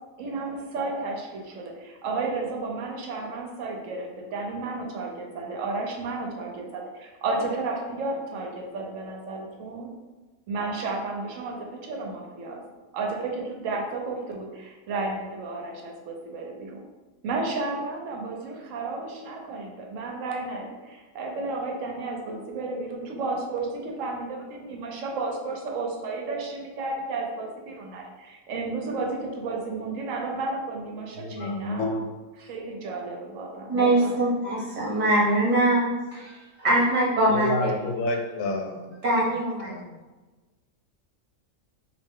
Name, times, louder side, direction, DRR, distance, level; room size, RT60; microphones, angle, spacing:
voice 1, 0.2-9.9 10.5-12.6 12.9-16.8 17.2-31.9 32.4-34.1, right 3 dB, 75° right, 1 dB, 1.0 m, -32 dB
voice 2, 31.2-32.0 37.3-38.8 39.7-39.8, left 2 dB, 85° left, 3 dB, 1.0 m, -28 dB
voice 3, 33.7-37.9 39.0-39.7, right 1 dB, 35° right, -7 dB, 1.2 m, -23 dB
3.1 x 2.6 x 3.5 m, 1.2 s
omnidirectional pair, 1.4 m